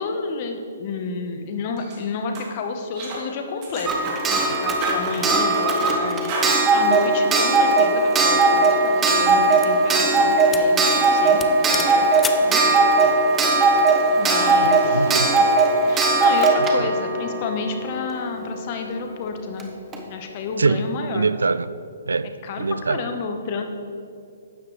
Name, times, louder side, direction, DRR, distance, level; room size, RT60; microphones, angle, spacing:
voice 1, 0.0-10.8 11.1-11.6 11.9-12.6 14.2-15.1 15.8-19.7 20.1-21.3 22.4-23.6, left 4 dB, 40° left, 5 dB, 1.2 m, -30 dB
sound 1, 1.8-2.0 2.3-2.5 3.0-3.2 3.6-4.5 4.8-5.9 6.3-6.5, right 3 dB, 30° right, 2.5 m, -31 dB
Clock, 3.8-18.4 19.6-19.7 19.9-20.0, right 3 dB, 15° right, 1.0 m, -19 dB
sound 2, 7.9-8.1 8.8-10.1 10.5-10.8 11.0-11.1 11.4-12.5, left 5 dB, 10° left, 0.5 m, -32 dB
voice 2, 14.8-15.4 16.6-16.9 20.6-20.9 21.1-21.7 22.1-22.3 22.6-23.1, right 4 dB, 80° right, 15 dB, 0.4 m, -24 dB
12.5 x 8.8 x 3.3 m, 2.4 s
hypercardioid pair, 135°, 0 cm